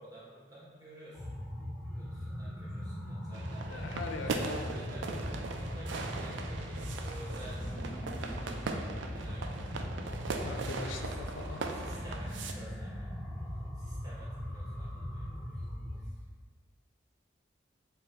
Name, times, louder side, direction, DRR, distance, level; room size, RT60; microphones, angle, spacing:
voice 1, 0.0-1.4 2.0-3.8 4.1-5.3 5.6-9.8 11.0-11.4 11.7-15.6 16.0-16.2, right 1 dB, 20° right, -8 dB, 1.0 m, -52 dB
sound 1, 1.1-16.1, equal, 5° left, 0.3 m, -39 dB
sound 2, 3.3-12.5, right 4 dB, 70° right, 0.3 m, -40 dB
voice 2, 3.7-4.8 10.4-11.6, left 3 dB, 85° left, 4 dB, 0.4 m, -41 dB
3.9 x 2.2 x 3.9 m, 1.5 s
head